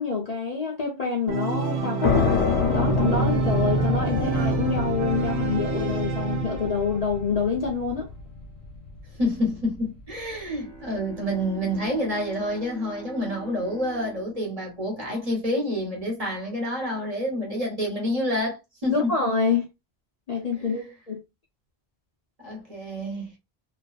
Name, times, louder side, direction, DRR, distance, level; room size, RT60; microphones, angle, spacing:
voice 1, 0.0-2.3 2.7-8.1 18.9-19.6 20.3-21.2, left 5 dB, 45° left, 0.6 m, -27 dB
Organ, 1.3-7.0, right 5 dB, 75° right, 0.9 m, -27 dB
sound 1, 2.0-9.4, left 6 dB, 80° left, 1.0 m, -28 dB
voice 2, 9.2-19.1 20.6-20.8 22.4-23.3, left 1 dB, 35° right, 1.0 m, -28 dB
Bowed string instrument, 10.3-15.8, right 1 dB, 5° left, 0.6 m, -45 dB
2.4 x 2.3 x 2.3 m
omnidirectional pair, 1.1 m